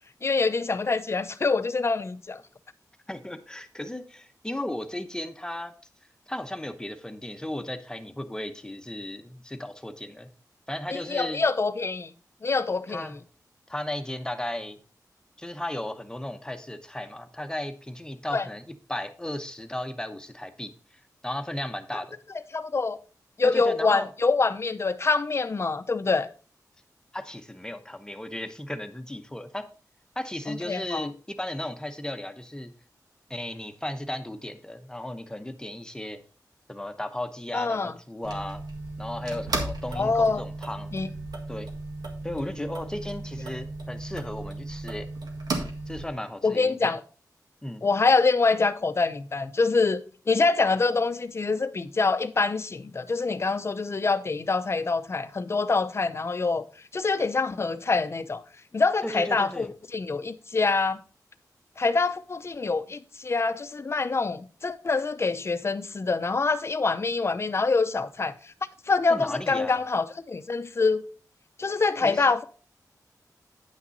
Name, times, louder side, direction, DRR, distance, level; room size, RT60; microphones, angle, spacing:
voice 1, 0.2-2.4 10.9-12.1 12.4-13.2 18.3-18.4 22.5-23.0 23.4-26.3 30.5-31.1 37.5-37.9 40.0-40.4 40.9-41.1 46.4-47.0 47.8-50.0 50.3-56.6 56.9-58.4 58.7-61.0 61.8-68.3 68.9-71.0 71.6-72.4, left 4 dB, 40° left, 0.7 m, -25 dB
voice 2, 3.1-5.7 6.3-10.3 10.7-11.4 12.9-13.2 13.7-14.8 15.4-20.7 21.2-22.2 23.4-24.1 27.1-29.7 30.2-32.7 33.3-36.2 36.7-38.6 39.0-40.9 41.5-41.7 42.2-45.1 45.9-46.9 47.6-47.8 59.0-59.7 69.1-69.8 72.0-72.3, left 1 dB, 10° left, 0.9 m, -35 dB
sound 1, 38.2-46.1, right 2 dB, 75° right, 1.8 m, -35 dB
9.7 x 6.0 x 4.0 m
wide cardioid pair, 105°, 7 cm